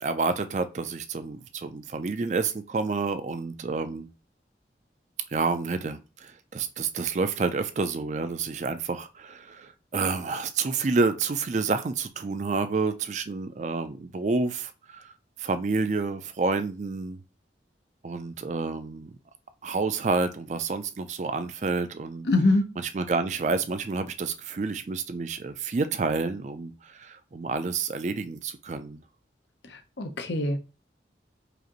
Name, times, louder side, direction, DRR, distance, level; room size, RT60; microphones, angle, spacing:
voice 1, 0.0-4.1 5.3-15.1 15.4-17.2 18.0-19.1 19.6-22.3 22.8-29.0, right 4 dB, 40° right, 10 dB, 0.4 m, -29 dB
voice 2, 22.3-22.7 29.7-30.6, left 2 dB, 80° left, 6 dB, 0.7 m, -24 dB
4.9 x 2.6 x 3.0 m, 0.31 s
head